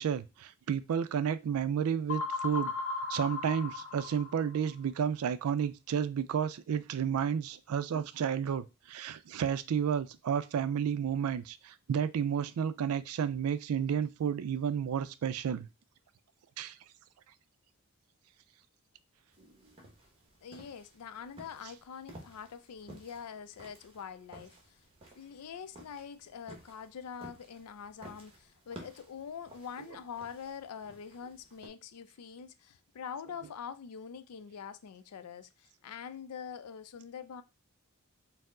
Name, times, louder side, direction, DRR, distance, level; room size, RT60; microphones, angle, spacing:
voice 1, 0.0-2.7 3.1-15.7 16.6-16.8, right 8 dB, 75° right, 0.3 m, -31 dB
sound 1, 2.1-4.7, left 4 dB, 55° left, 0.8 m, -36 dB
sound 2, 19.3-31.7, right 1 dB, 25° right, 0.9 m, -55 dB
voice 2, 20.4-24.8 25.2-37.4, left 7 dB, 85° left, 0.4 m, -44 dB
4.4 x 2.0 x 3.6 m
head